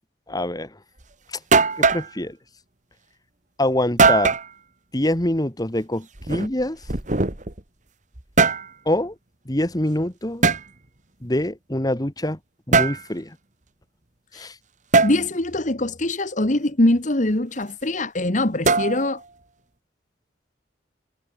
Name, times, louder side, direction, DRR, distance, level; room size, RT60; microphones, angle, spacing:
voice 1, 0.3-0.7 1.8-2.4 3.6-4.3 4.9-6.8 8.9-9.1 9.5-10.4 11.2-12.4 12.7-13.3 14.4-14.5, left 1 dB, 20° left, 2.0 m, -24 dB
sound 1, 1.0-1.1 1.5-2.1 4.0-4.5 6.2-7.6 8.2-8.7 10.4-10.6 12.7-13.0 14.9-15.2 18.7-19.2, right 4 dB, 45° right, 2.3 m, -19 dB
voice 2, 15.0-19.2, left 1 dB, 45° left, 1.8 m, -22 dB
head